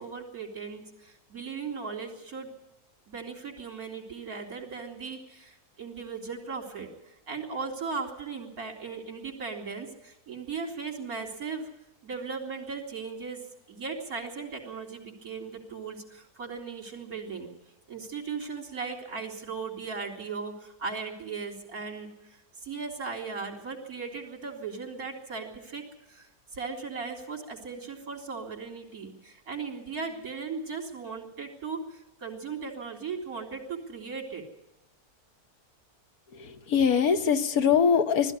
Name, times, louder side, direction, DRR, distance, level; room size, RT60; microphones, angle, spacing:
voice 1, 0.0-2.5 3.1-11.7 12.0-13.4 13.7-17.5 17.9-34.4, right 5 dB, 70° right, 1 dB, 4.1 m, -37 dB
voice 2, 36.3-38.4, left 7 dB, 75° left, 8 dB, 1.5 m, -23 dB
20.0 x 14.0 x 9.8 m, 0.88 s
omnidirectional pair, 1.6 m